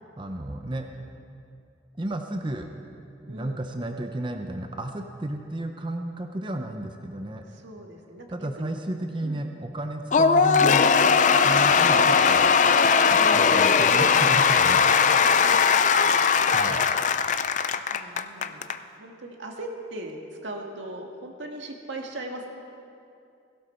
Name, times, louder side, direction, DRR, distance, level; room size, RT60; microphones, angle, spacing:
voice 1, 0.2-1.1 2.0-2.7 3.3-7.4 8.3-10.9 11.1-12.5 13.1-15.2 16.5-16.9, right 1 dB, 25° right, 5 dB, 0.7 m, -33 dB
voice 2, 3.3-3.7 7.5-8.8 9.2-9.4 13.0-13.6 15.3-16.3 17.9-22.5, right 1 dB, 70° right, 2 dB, 1.8 m, -39 dB
Cheering / Applause / Crowd, 10.1-18.8, left 6 dB, 40° left, 0.4 m, -19 dB
16.5 x 16.5 x 4.4 m, 2.5 s
head